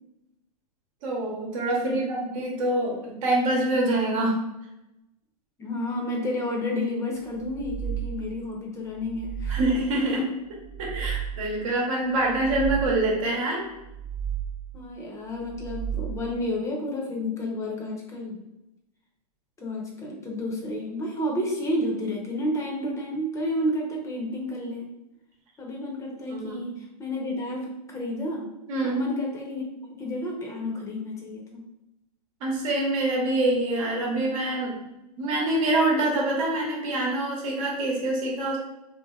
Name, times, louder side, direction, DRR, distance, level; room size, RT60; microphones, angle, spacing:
voice 1, 1.0-4.3 9.5-10.3 10.8-13.6 26.3-26.6 28.7-29.0 32.4-34.8 35.2-38.6, right 1 dB, 55° right, -2 dB, 1.0 m, -25 dB
voice 2, 1.8-2.3 5.6-9.7 14.7-18.4 19.6-24.9 25.6-28.5 28.8-31.7, left 1 dB, 15° left, -1 dB, 0.7 m, -31 dB
sound 1, 7.4-8.5 9.0-10.1 10.6-11.6 12.2-13.3 13.7-14.8 15.4-16.5, right 9 dB, 20° right, 0.9 m, -34 dB
2.9 x 2.8 x 2.3 m, 0.91 s
hypercardioid pair, 120°, 20 cm